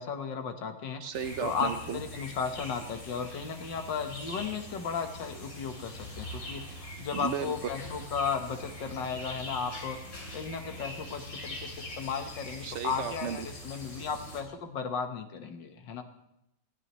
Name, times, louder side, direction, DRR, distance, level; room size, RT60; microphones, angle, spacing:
voice 1, 0.0-1.1 1.4-10.0 10.3-16.0, left 6 dB, 70° left, 6 dB, 1.9 m, -35 dB
voice 2, 1.0-2.0 7.1-7.5 12.6-13.5, right 7 dB, 75° right, 9 dB, 0.6 m, -34 dB
sound 1, 1.1-14.4, equal, 45° left, 3.3 m, -43 dB
20.0 x 16.0 x 3.1 m, 0.84 s
omnidirectional pair, 2.1 m